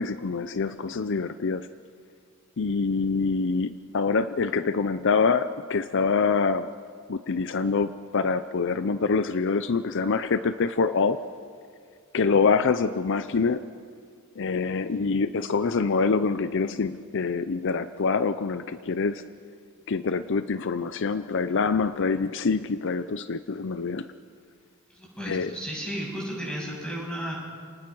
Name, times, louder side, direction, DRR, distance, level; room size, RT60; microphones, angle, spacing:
voice 1, 0.0-1.7 2.6-6.7 7.1-11.2 12.1-13.6 14.4-19.2 19.9-24.1 25.3-25.5, left 4 dB, 60° left, 12 dB, 0.6 m, -25 dB
voice 2, 24.9-27.4, equal, 5° left, -4 dB, 7.9 m, -33 dB
29.5 x 19.5 x 6.2 m, 2.1 s
head